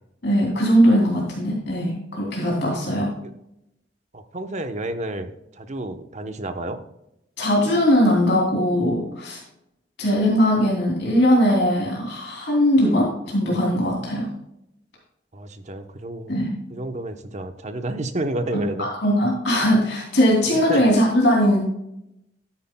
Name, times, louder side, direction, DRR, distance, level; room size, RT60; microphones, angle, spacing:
voice 1, 0.2-3.1 7.4-9.4 10.0-14.3 16.3-16.5 18.5-21.6, equal, 65° left, -3 dB, 2.9 m, -20 dB
voice 2, 4.1-6.8 15.3-16.4 16.7-18.9 20.5-20.8, right 1 dB, 40° right, 7 dB, 0.9 m, -30 dB
12.5 x 9.8 x 2.3 m, 0.81 s
head